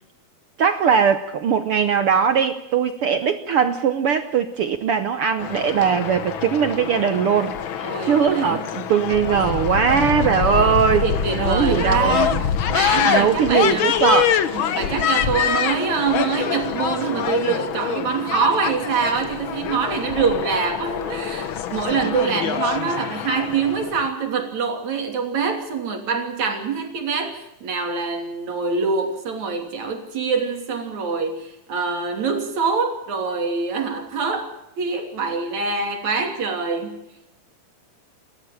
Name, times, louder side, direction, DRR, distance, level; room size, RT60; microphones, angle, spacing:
voice 1, 0.6-11.1 11.3-12.4 13.1-14.3, right 7 dB, 80° right, 1.2 m, -20 dB
sound 1, 5.4-24.1, left 9 dB, 90° left, 1.1 m, -25 dB
voice 2, 7.8-8.7 10.4-13.9 14.5-36.9, right 5 dB, 55° right, 4.2 m, -25 dB
29.0 x 13.0 x 9.0 m
omnidirectional pair, 3.9 m